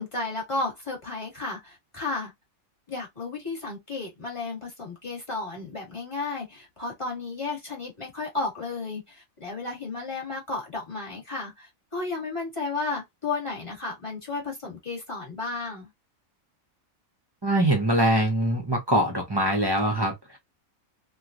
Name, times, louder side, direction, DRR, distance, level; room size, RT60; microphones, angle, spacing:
voice 1, 0.0-2.3 2.9-15.9, left 3 dB, 25° left, 1.3 m, -33 dB
voice 2, 17.4-20.4, right 1 dB, 35° right, 0.4 m, -23 dB
3.0 x 2.3 x 2.4 m
omnidirectional pair, 1.5 m